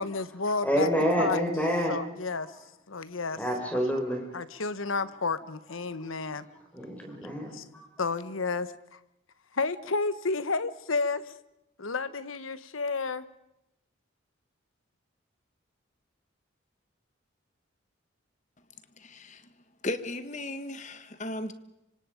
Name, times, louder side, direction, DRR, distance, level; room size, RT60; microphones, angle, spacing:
voice 1, 0.0-0.9 1.2-1.5 1.9-2.5 2.9-3.4 4.3-6.4 7.5-7.6 8.0-9.0 9.5-11.3 11.8-13.2, left 4 dB, 90° left, 1.2 m, -31 dB
voice 2, 0.6-1.9 3.3-4.2 6.7-7.9, equal, 10° left, 5.0 m, -27 dB
voice 3, 19.0-19.5 19.8-21.5, left 1 dB, 35° left, 1.5 m, -36 dB
26.0 x 25.0 x 5.2 m
head